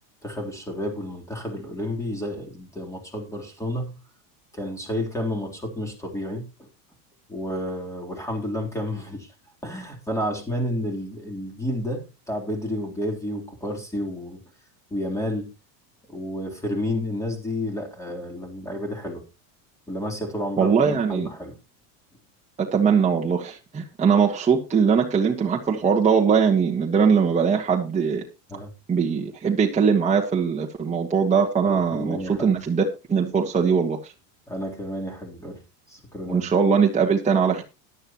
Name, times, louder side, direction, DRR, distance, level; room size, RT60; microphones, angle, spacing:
voice 1, 0.2-4.0 4.5-6.7 7.3-9.3 9.6-14.4 14.9-15.5 16.1-19.2 19.9-20.7 21.1-21.5 28.5-28.7 31.6-32.6 34.5-35.6 35.9-36.5, left 1 dB, 5° left, 3.4 m, -31 dB
voice 2, 20.6-21.3 22.6-28.2 28.9-34.1 36.3-37.6, right 6 dB, 15° right, 1.4 m, -21 dB
14.5 x 11.0 x 3.0 m
supercardioid pair, 125°, 48 cm